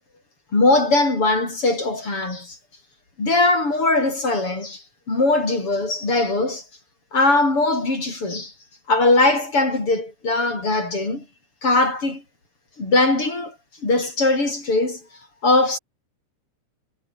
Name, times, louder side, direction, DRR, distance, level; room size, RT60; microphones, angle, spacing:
voice 1, 0.5-2.6 3.2-6.6 7.1-8.5 8.9-11.2 11.6-12.2 12.8-13.5 13.8-15.0 15.4-15.8, left 2 dB, 25° left, 8.4 m, -20 dB
omnidirectional pair, 6.0 m